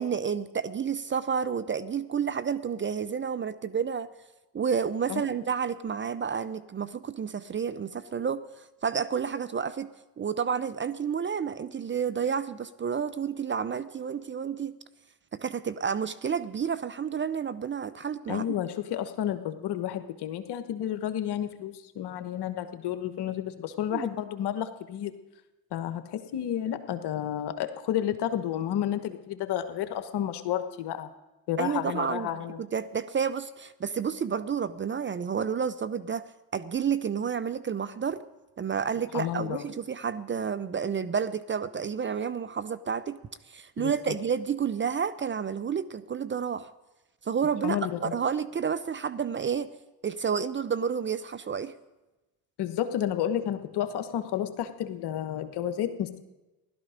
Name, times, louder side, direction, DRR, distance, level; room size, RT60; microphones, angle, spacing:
voice 1, 0.0-4.1 4.5-8.4 8.8-9.9 10.2-14.8 15.4-18.4 23.9-24.1 31.6-32.3 32.6-38.2 38.6-43.2 43.5-46.7 47.2-47.8 48.1-49.7 50.0-51.7, right 7 dB, 25° right, 14 dB, 0.6 m, -30 dB
voice 2, 18.3-25.1 25.7-31.1 31.5-32.6 39.1-39.7 43.8-43.9 47.6-48.1 52.6-56.2, left 10 dB, 60° left, 10 dB, 1.3 m, -31 dB
16.5 x 12.0 x 5.1 m, 1.1 s
hypercardioid pair, 65°, 45 cm